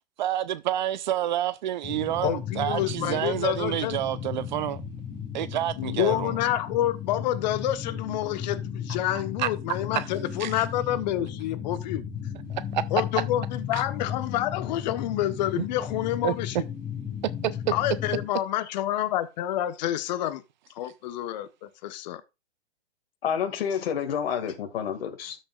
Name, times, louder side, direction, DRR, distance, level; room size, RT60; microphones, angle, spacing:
voice 1, 0.2-4.8 5.3-6.3 9.4-10.1 10.4-10.6 12.5-12.8 13.1-13.2 13.7-13.8 15.6-15.7 16.2-16.3 17.2-17.5, right 12 dB, 45° right, 0.5 m, -28 dB
sound 1, 1.8-18.3, left 8 dB, 15° left, 4.0 m, -35 dB
voice 2, 2.2-4.0 5.8-12.0 12.9-16.6 17.7-20.4 20.8-22.2, left 13 dB, 40° left, 1.0 m, -28 dB
voice 3, 23.2-25.4, left 8 dB, 60° left, 2.0 m, -29 dB
13.0 x 6.6 x 2.4 m
hypercardioid pair, 140°, 33 cm